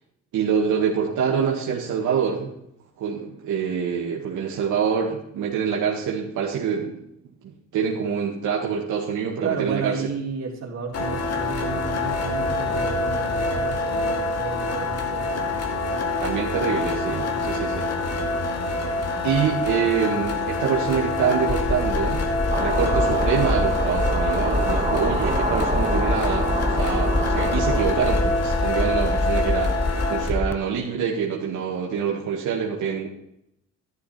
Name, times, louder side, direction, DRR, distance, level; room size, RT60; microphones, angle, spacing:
voice 1, 0.3-2.5 3.0-7.0 7.7-9.9 16.2-17.8 19.2-22.2 22.6-33.1, right 7 dB, 80° right, -3 dB, 2.1 m, -25 dB
voice 2, 9.4-16.0 17.2-17.4, right 5 dB, 60° right, -1 dB, 3.5 m, -32 dB
sound 1, 10.9-30.3, left 2 dB, 55° left, 2.3 m, -26 dB
sound 2, 21.5-30.5, left 2 dB, 10° left, 0.5 m, -26 dB
sound 3, 22.5-27.9, right 3 dB, 25° right, 1.7 m, -29 dB
11.5 x 11.5 x 4.4 m, 0.77 s
cardioid pair, 90°, 30 cm